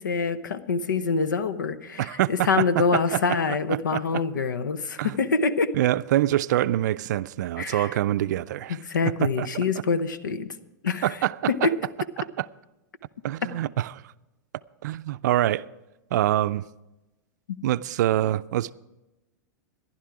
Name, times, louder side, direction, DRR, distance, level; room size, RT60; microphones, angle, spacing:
voice 1, 0.0-5.7 7.6-7.9 8.7-10.5 10.8-11.2 11.5-11.7, left 4 dB, 90° left, 0.8 m, -25 dB
voice 2, 2.0-2.6 2.9-3.4 3.7-4.0 5.0-5.1 5.7-8.8 9.2-9.5 11.0-11.7 12.4-12.5 13.2-13.9 14.8-15.7 16.1-16.6 17.6-18.7, right 13 dB, 70° right, 0.4 m, -25 dB
15.0 x 11.0 x 4.8 m
hypercardioid pair, 110°, 10 cm